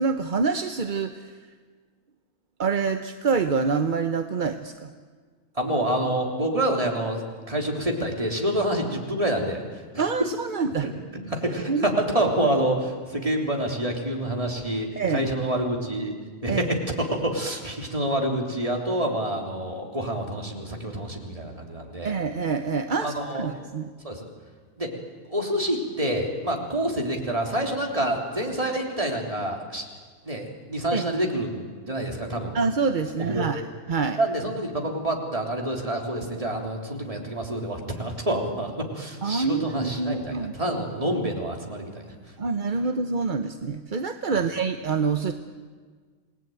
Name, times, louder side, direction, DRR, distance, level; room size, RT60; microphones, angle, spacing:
voice 1, 0.0-1.4 2.6-4.9 10.0-10.9 11.7-12.0 15.0-15.2 16.5-16.6 22.0-23.9 30.9-31.0 32.5-33.6 33.9-34.2 39.2-40.5 42.4-45.3, right 5 dB, 40° right, 7 dB, 0.9 m, -26 dB
voice 2, 5.6-7.2 7.5-9.6 9.9-10.0 10.8-16.2 16.4-22.1 23.0-23.5 24.0-24.3 24.8-24.9 25.3-29.8 30.2-32.6 33.2-33.5 34.2-42.1 44.3-44.4, right 1 dB, 20° right, 1 dB, 3.5 m, -27 dB
27.5 x 19.5 x 9.3 m, 1.5 s
omnidirectional pair, 1.6 m